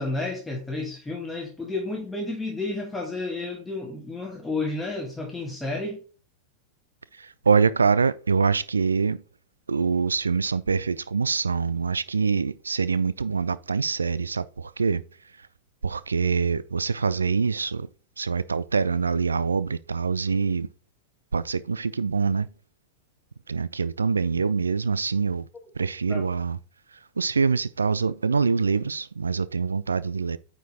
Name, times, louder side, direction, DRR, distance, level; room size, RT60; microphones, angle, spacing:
voice 1, 0.0-6.0 26.1-26.3, left 2 dB, 10° left, 1.3 m, -31 dB
voice 2, 7.2-9.2 9.7-15.0 15.8-17.9 18.2-20.7 21.3-22.5 23.5-25.5 25.8-26.6 27.2-30.4, right 5 dB, 75° right, 0.3 m, -24 dB
9.0 x 4.3 x 2.9 m
figure-of-eight pair, 90°, 0 cm